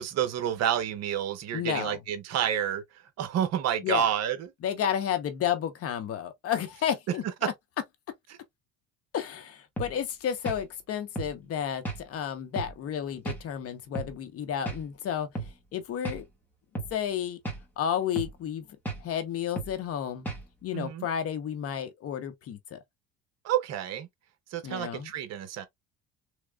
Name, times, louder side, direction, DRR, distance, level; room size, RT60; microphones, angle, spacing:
voice 1, 0.0-2.8 3.2-4.4 20.7-21.1 23.4-24.1 24.5-25.7, right 10 dB, 55° right, 0.9 m, -29 dB
voice 2, 1.5-2.0 3.8-4.1 4.6-7.2 9.1-15.3 15.7-16.2 16.9-17.4 17.8-18.6 19.0-20.3 20.6-22.8 24.6-25.1, left 9 dB, 45° left, 0.9 m, -31 dB
sound 1, 9.8-9.9 10.4-10.6 11.2-11.3 11.8-12.0 12.6-12.7 13.3-13.4 13.9-14.1 14.7-14.8 15.3-15.5 16.0-16.2 16.7-16.9 17.4-17.6 18.2-18.4 18.8-19.0 19.6-19.7 20.3-20.5, right 2 dB, 5° left, 1.7 m, -34 dB
3.6 x 3.1 x 2.3 m
cardioid pair, 110°, 32 cm